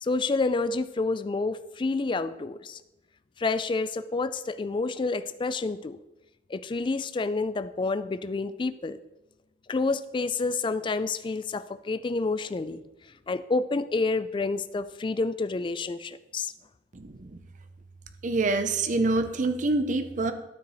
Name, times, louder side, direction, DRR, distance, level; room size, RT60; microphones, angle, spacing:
voice 1, 0.0-2.8 3.4-6.0 6.5-9.0 9.7-12.8 13.3-16.5, left 3 dB, 30° left, 14 dB, 0.4 m, -29 dB
voice 2, 16.9-17.4 18.2-20.3, right 3 dB, 45° right, 9 dB, 0.6 m, -26 dB
12.0 x 4.7 x 4.0 m, 0.98 s
head